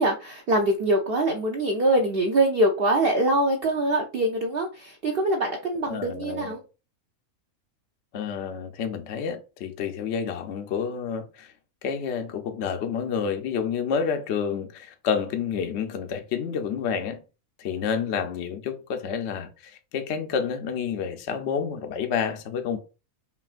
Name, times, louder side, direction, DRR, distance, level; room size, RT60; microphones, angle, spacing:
voice 1, 0.0-6.6, right 1 dB, 65° right, 0.5 m, -23 dB
voice 2, 5.9-6.5 8.1-11.5 11.8-17.2 17.6-22.8, left 6 dB, 70° left, 0.7 m, -29 dB
5.6 x 2.5 x 2.4 m
omnidirectional pair, 1.6 m